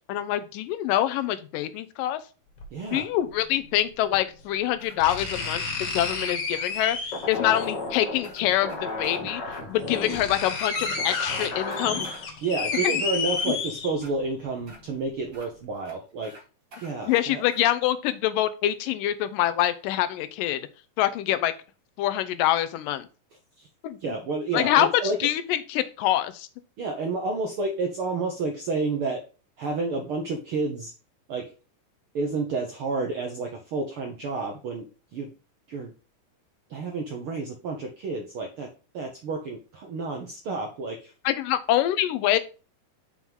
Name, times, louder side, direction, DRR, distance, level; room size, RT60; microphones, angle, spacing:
voice 1, 0.1-2.2 2.9-9.4 9.7-12.1 12.7-12.8 17.0-20.6 21.0-21.5 22.0-23.1 23.8-24.0 24.5-24.9 25.2-26.5 41.3-42.4, left 13 dB, 80° left, 13 dB, 2.3 m, -25 dB
sound 1, 2.6-2.7 4.1-4.2 5.0-7.4 8.7-8.8 9.5-9.6 9.8-14.2 14.7-14.8, left 4 dB, 65° left, 2.9 m, -31 dB
voice 2, 2.7-3.1 12.4-16.3 16.8-17.4 23.6-23.7 24.0-25.2 26.8-29.2 29.6-30.9 31.3-31.5 32.1-34.9 35.1-35.3 35.7-35.9 36.7-38.7 38.9-41.1, right 3 dB, 75° right, 2 dB, 1.2 m, -30 dB
sound 2, 4.8-5.9 6.3-6.4 6.8-6.9 7.3-9.2 9.5-9.6 10.0-10.8 11.0-12.2 12.7-13.5 14.0-14.1 14.7-14.8 15.3-15.5 15.9-16.0 16.2-16.4 16.7-17.7, right 1 dB, 40° right, 1.2 m, -48 dB
sound 3, 7.1-12.3, left 3 dB, 40° left, 2.0 m, -34 dB
6.3 x 5.7 x 3.5 m, 0.34 s
omnidirectional pair, 3.9 m